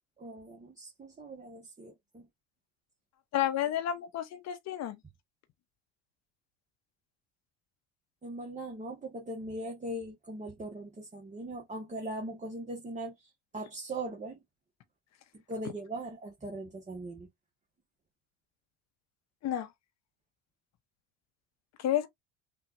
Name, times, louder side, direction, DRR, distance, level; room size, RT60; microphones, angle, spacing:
voice 1, 0.2-2.2 8.2-13.1 13.5-14.4 15.5-17.3, right 1 dB, 20° right, 1.2 m, -40 dB
voice 2, 3.3-5.0 19.4-19.7 21.8-22.1, left 11 dB, 45° left, 0.9 m, -30 dB
5.8 x 2.4 x 2.5 m
hypercardioid pair, 70°, 37 cm